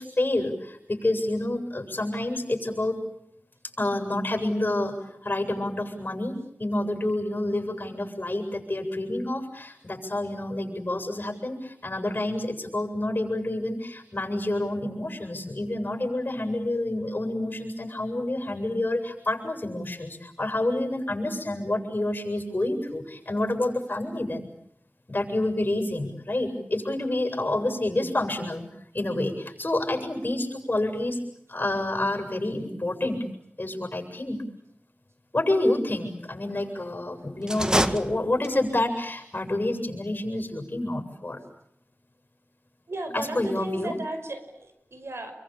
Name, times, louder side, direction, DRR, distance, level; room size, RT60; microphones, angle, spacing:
voice 1, 0.0-3.0 3.8-5.0 5.2-24.5 25.1-28.6 28.9-31.2 31.5-33.2 33.6-34.4 35.3-41.4 43.1-43.9, left 1 dB, 45° left, 5 dB, 7.9 m, -28 dB
sound 1, 37.4-38.8, right 1 dB, 15° right, 1.8 m, -27 dB
voice 2, 42.9-45.3, right 2 dB, 80° right, 7 dB, 5.4 m, -35 dB
28.0 x 24.0 x 8.7 m, 0.74 s
wide cardioid pair, 45°, 4 cm